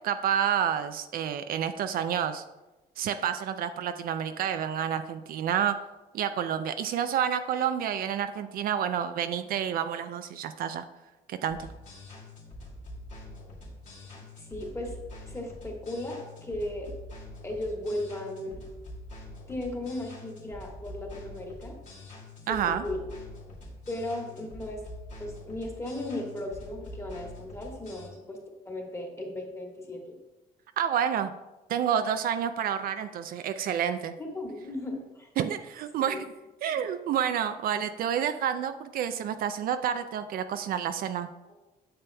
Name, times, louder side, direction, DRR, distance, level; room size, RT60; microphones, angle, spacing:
voice 1, 0.0-2.4 3.0-5.8 6.1-10.8 11.3-11.7 22.5-22.8 30.8-31.3 31.7-34.1 35.4-36.3 36.6-41.3, right 9 dB, 60° right, 9 dB, 0.4 m, -29 dB
sound 1, 11.5-28.1, left 1 dB, 50° left, 2.3 m, -45 dB
voice 2, 14.3-16.9 17.4-18.6 19.5-21.8 22.5-23.1 23.9-24.8 25.2-28.4 28.6-30.0 34.2-35.3 36.0-36.2, left 1 dB, 15° left, 0 dB, 1.6 m, -36 dB
8.8 x 6.7 x 2.2 m, 1.0 s
cardioid pair, 110°, 17 cm